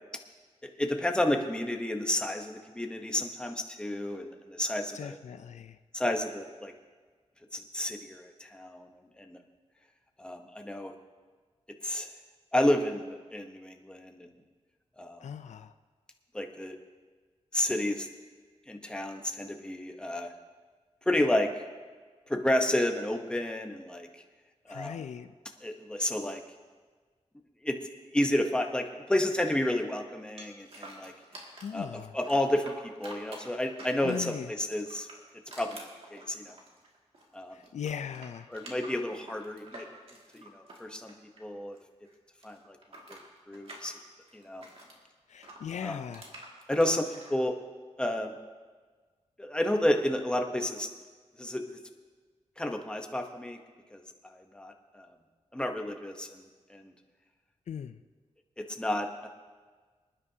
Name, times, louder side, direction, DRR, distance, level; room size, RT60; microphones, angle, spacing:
voice 1, 0.6-5.2 5.9-6.7 7.5-8.9 9.2-9.4 10.2-10.9 11.8-12.1 12.5-14.3 15.0-15.2 16.3-16.8 17.5-18.1 18.7-20.3 21.1-21.5 22.3-24.1 24.7-25.0 25.6-26.4 27.6-27.8 28.1-31.1 31.7-31.9 32.1-32.7 33.0-35.1 35.6-36.6 37.3-37.6 38.5-39.9 40.4-41.1 41.4-41.8 42.4-42.8 43.1-43.2 43.5-44.0 44.3-44.6 45.8-46.0 46.7-47.6 48.0-48.3 49.4-50.9 51.4-51.8 52.6-53.6 53.9-55.1 55.5-56.4 56.7-56.9 58.6-59.3, left 1 dB, 10° left, 4 dB, 0.8 m, -31 dB
voice 2, 4.9-5.8 15.2-15.7 24.7-25.3 31.6-32.1 34.0-34.5 37.5-38.5 45.3-46.3 57.7-58.0, left 8 dB, 80° left, 11 dB, 0.4 m, -39 dB
sound 1, 30.4-31.8 32.2-34.4 34.8-37.3 37.6-41.8 42.0-45.0 45.4-47.3, right 1 dB, 55° right, 2.1 m, -48 dB
26.0 x 9.8 x 2.8 m, 1.5 s
wide cardioid pair, 170°, 12 cm